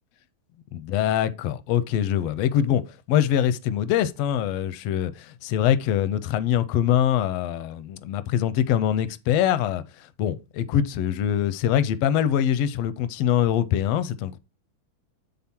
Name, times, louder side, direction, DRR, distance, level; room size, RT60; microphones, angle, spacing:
voice 1, 0.7-2.8 3.1-14.4, left 10 dB, 80° left, 1.4 m, -23 dB
9.7 x 3.8 x 4.3 m
omnidirectional pair, 3.4 m